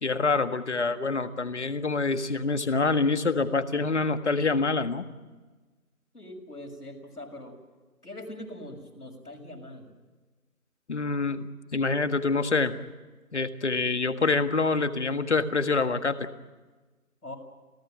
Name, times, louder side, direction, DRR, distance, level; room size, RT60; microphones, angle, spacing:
voice 1, 0.0-5.0 10.9-12.8 13.3-16.3, left 3 dB, 50° left, 10 dB, 1.7 m, -26 dB
voice 2, 6.1-7.6 8.0-9.9 17.2-17.4, left 1 dB, 85° left, 4 dB, 6.8 m, -42 dB
29.5 x 17.0 x 9.2 m, 1.3 s
figure-of-eight pair, 165°, 45 cm